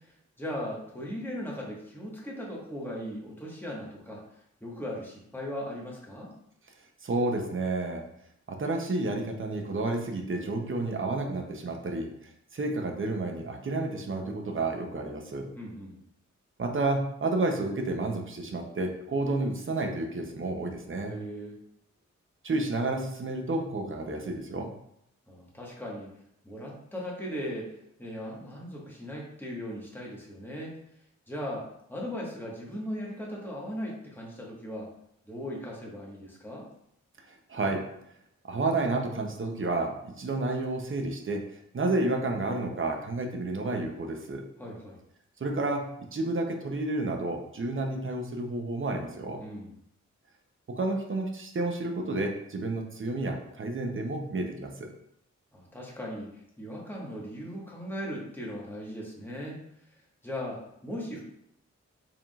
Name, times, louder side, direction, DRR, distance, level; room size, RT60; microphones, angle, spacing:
voice 1, 0.0-6.3 15.5-16.0 21.0-21.6 25.3-26.1 26.4-30.8 31.3-34.9 35.2-36.7 44.6-45.0 49.4-49.7 55.5-59.6 59.9-60.0 60.2-61.2, equal, 5° left, -4 dB, 1.5 m, -38 dB
voice 2, 7.0-8.0 8.5-15.5 16.6-21.1 22.4-24.7 37.3-37.9 38.4-41.4 41.7-44.5 45.4-49.4 50.7-54.9, right 2 dB, 45° right, 3 dB, 0.8 m, -31 dB
4.7 x 3.6 x 2.4 m, 0.75 s
cardioid pair, 70°, 29 cm